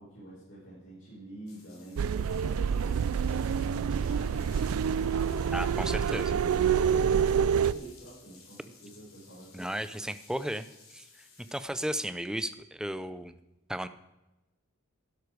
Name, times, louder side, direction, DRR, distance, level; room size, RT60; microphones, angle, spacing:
voice 1, 0.0-3.0 6.6-9.7, right 1 dB, 55° left, -8 dB, 5.1 m, -48 dB
sound 1, 1.5-11.7, left 4 dB, 75° left, 4.0 m, -56 dB
sound 2, 2.0-7.7, right 7 dB, 80° right, 0.4 m, -27 dB
voice 2, 5.5-6.4 9.5-10.7 10.9-11.1 11.5-13.3 13.7-13.9, right 1 dB, 5° right, 12 dB, 0.5 m, -34 dB
12.0 x 11.0 x 4.7 m, 0.97 s
head